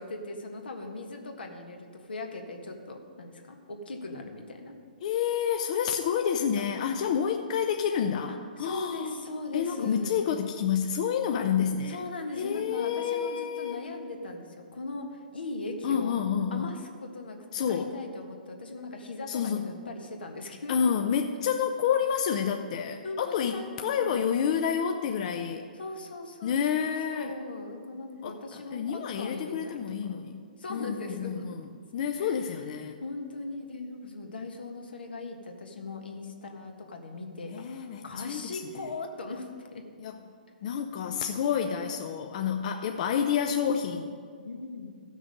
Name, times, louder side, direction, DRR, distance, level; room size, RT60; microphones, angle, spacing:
voice 1, 0.0-4.7 6.6-6.7 8.6-10.1 11.9-16.2 16.5-17.4 17.7-20.9 23.0-24.1 25.8-30.2 30.6-31.5 32.1-32.4 33.0-39.8 44.4-44.9, left 2 dB, 80° left, 3 dB, 1.6 m, -39 dB
voice 2, 5.0-9.2 9.5-12.0 12.4-13.8 15.8-16.7 17.5-17.9 19.3-19.7 20.7-25.7 26.4-27.4 28.2-30.4 30.7-33.0 37.5-38.9 40.0-40.2 40.6-44.1, left 8 dB, 45° left, 5 dB, 0.6 m, -29 dB
14.5 x 6.2 x 5.2 m, 2.1 s
hypercardioid pair, 140°, 5 cm